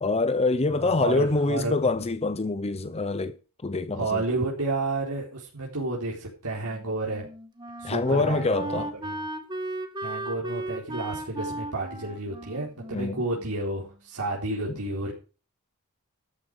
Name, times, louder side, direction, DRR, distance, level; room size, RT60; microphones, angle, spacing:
voice 1, 0.0-3.4 3.6-4.2 7.8-8.9 12.9-13.2, left 3 dB, 30° left, 0.7 m, -25 dB
voice 2, 0.7-2.0 3.9-7.3 7.8-9.3 10.0-15.1, right 2 dB, 80° right, 4.2 m, -31 dB
Wind instrument woodwind instrument, 7.1-13.9, right 1 dB, 20° right, 1.9 m, -36 dB
13.5 x 10.0 x 4.7 m
head